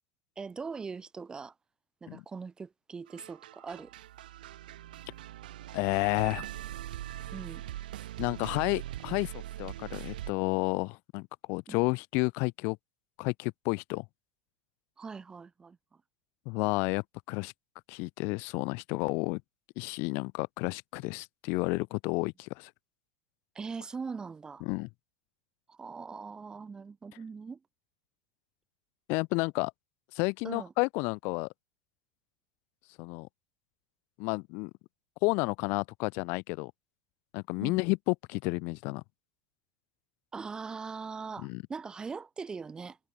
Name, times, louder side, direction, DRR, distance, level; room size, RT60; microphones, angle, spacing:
voice 1, 0.4-1.5 2.0-3.9 7.3-7.6 11.7-11.9 15.0-16.0 23.5-24.6 25.7-27.6 30.4-30.7 37.6-37.8 40.3-43.0, right 5 dB, 15° right, 6.0 m, -41 dB
sound 1, 3.1-10.3, right 13 dB, 85° right, 6.4 m, -42 dB
voice 2, 5.7-6.5 8.2-9.3 9.6-12.8 13.2-14.0 16.5-17.5 17.9-19.4 19.8-22.7 24.6-24.9 29.1-29.7 30.1-31.5 33.0-33.3 34.2-34.7 35.2-36.7 37.3-39.0 41.4-41.6, left 29 dB, 55° left, 0.8 m, -31 dB
supercardioid pair, 130°, 5 cm